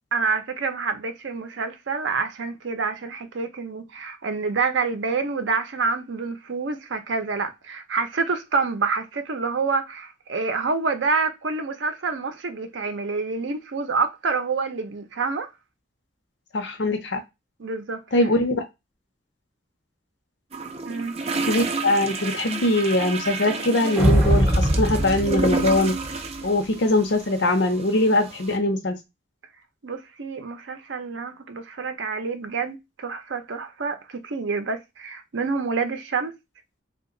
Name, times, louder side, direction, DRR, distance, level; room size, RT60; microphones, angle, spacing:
voice 1, 0.1-15.5 17.6-18.0 20.8-21.2 29.8-36.3, right 4 dB, 90° right, 0.6 m, -27 dB
voice 2, 16.5-17.2 18.1-18.6 21.4-26.0 26.4-29.0, left 1 dB, 70° left, 0.6 m, -22 dB
sound 1, 20.5-28.6, right 3 dB, 35° right, 0.5 m, -31 dB
sound 2, 24.0-26.4, equal, 10° right, 1.4 m, -21 dB
2.8 x 2.2 x 3.8 m
head